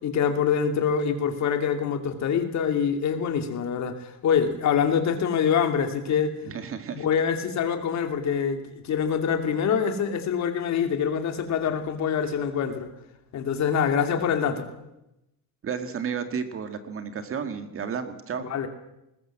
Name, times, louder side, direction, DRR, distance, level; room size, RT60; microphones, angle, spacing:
voice 1, 0.0-6.4 6.9-12.9 13.3-14.7 18.4-18.7, left 7 dB, 50° left, 6 dB, 2.8 m, -25 dB
voice 2, 6.4-7.1 15.6-18.5, right 6 dB, 40° right, 8 dB, 1.9 m, -32 dB
20.5 x 20.0 x 7.5 m, 0.89 s
cardioid pair, 170°, 36 cm